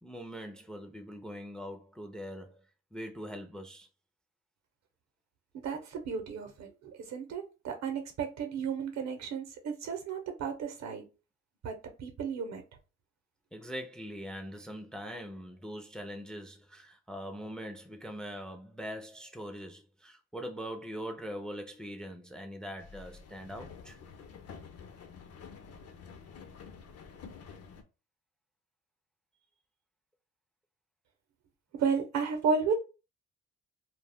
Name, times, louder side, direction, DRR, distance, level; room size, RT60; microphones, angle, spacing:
voice 1, 0.0-2.6 2.9-3.9 13.5-24.0, equal, 5° left, 0.4 m, -42 dB
voice 2, 5.6-11.0 11.6-12.6 31.7-32.7, right 5 dB, 60° right, 0.8 m, -33 dB
sound 1, 22.8-27.8, left 6 dB, 55° left, 0.6 m, -49 dB
2.3 x 2.0 x 3.4 m
cardioid pair, 90°, 30 cm